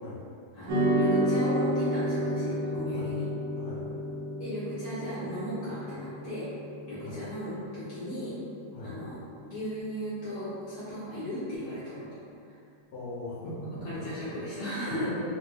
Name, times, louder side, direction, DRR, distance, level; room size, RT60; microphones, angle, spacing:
voice 1, 0.5-3.2 4.4-6.5 6.8-8.3 8.8-9.2 9.4-11.9 13.8-15.1, equal, 65° left, -13 dB, 1.5 m, -36 dB
sound 1, 0.7-9.2, equal, 85° right, 1.4 m, -31 dB
voice 2, 12.9-15.3, left 1 dB, 80° left, -7 dB, 1.4 m, -40 dB
3.8 x 2.2 x 3.2 m, 2.5 s
omnidirectional pair, 1.8 m